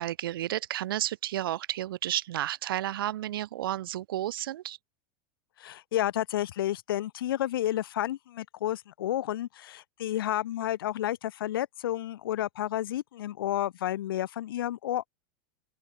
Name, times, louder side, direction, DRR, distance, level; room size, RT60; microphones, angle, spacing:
voice 1, 0.0-4.8, right 13 dB, 80° right, 3.7 m, -32 dB
voice 2, 5.6-15.1, left 13 dB, 85° left, 6.8 m, -31 dB
open air
supercardioid pair, 180°, 12 cm